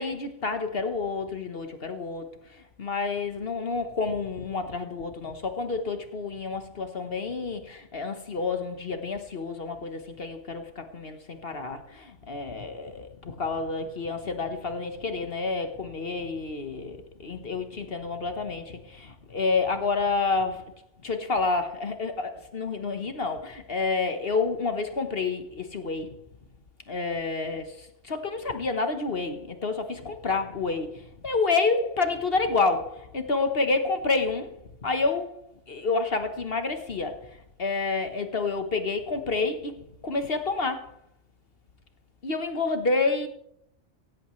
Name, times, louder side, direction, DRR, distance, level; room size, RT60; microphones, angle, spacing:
voice 1, 0.0-20.7 21.0-26.2 26.9-35.4 35.7-40.9 42.2-43.3, left 3 dB, 50° left, 1.4 m, -29 dB
17.0 x 16.0 x 3.2 m
omnidirectional pair, 1.3 m